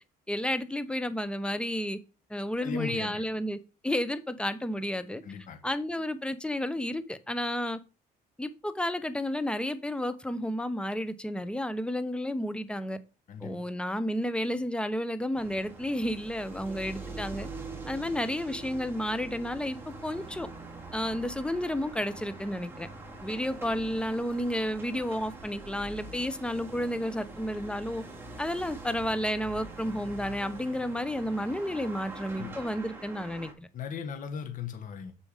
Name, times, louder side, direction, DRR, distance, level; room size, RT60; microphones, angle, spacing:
voice 1, 0.3-2.0 2.3-3.6 3.8-5.2 5.6-7.8 8.4-13.0 13.4-17.5 17.9-20.5 20.9-22.9 23.2-28.0 28.4-33.7, left 1 dB, 5° left, 0.9 m, -31 dB
voice 2, 2.6-3.2 5.2-5.6 13.3-13.5 32.4-32.6 33.7-35.1, left 7 dB, 50° left, 1.5 m, -37 dB
sound 1, 15.3-33.5, right 3 dB, 15° right, 2.7 m, -44 dB
7.3 x 6.8 x 5.0 m
cardioid pair, 110°, 17 cm